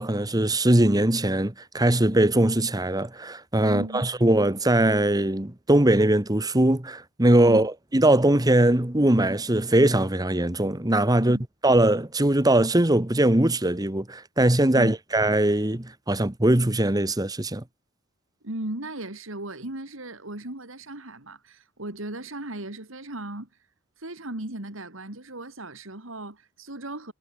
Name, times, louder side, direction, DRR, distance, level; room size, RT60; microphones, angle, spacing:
voice 1, 0.0-11.4 11.6-17.6, right 1 dB, 20° right, 1.3 m, -21 dB
voice 2, 3.6-4.1 7.5-7.7 14.7-14.9 18.4-23.5 24.0-27.1, right 1 dB, 65° right, 3.0 m, -36 dB
head